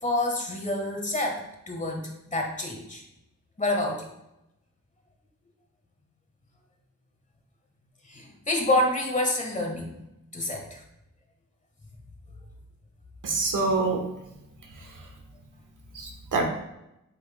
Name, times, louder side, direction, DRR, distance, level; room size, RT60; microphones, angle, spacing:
voice 1, 0.0-3.0 3.6-4.0 8.0-10.0 10.3-10.8, left 1 dB, 25° left, 1 dB, 1.4 m, -28 dB
voice 2, 13.2-14.0 14.6-15.1 15.9-16.5, right 3 dB, 85° right, 3 dB, 1.3 m, -27 dB
8.7 x 5.6 x 2.2 m, 0.88 s
wide cardioid pair, 125°, 30 cm